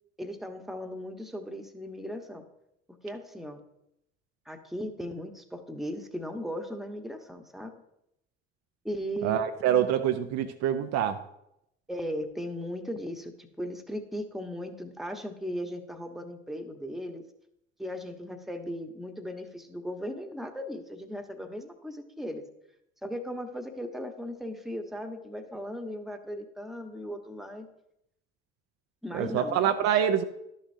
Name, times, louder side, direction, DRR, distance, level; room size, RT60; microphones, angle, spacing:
voice 1, 0.2-2.4 2.9-3.6 4.5-7.7 8.8-9.4 11.9-17.2 17.8-22.4 23.0-27.7 29.0-29.6, equal, ahead, 5 dB, 1.2 m, -37 dB
voice 2, 9.2-11.2 29.1-30.2, right 9 dB, 55° right, 7 dB, 0.6 m, -26 dB
12.0 x 6.4 x 2.7 m, 0.80 s
figure-of-eight pair, 50°, 31 cm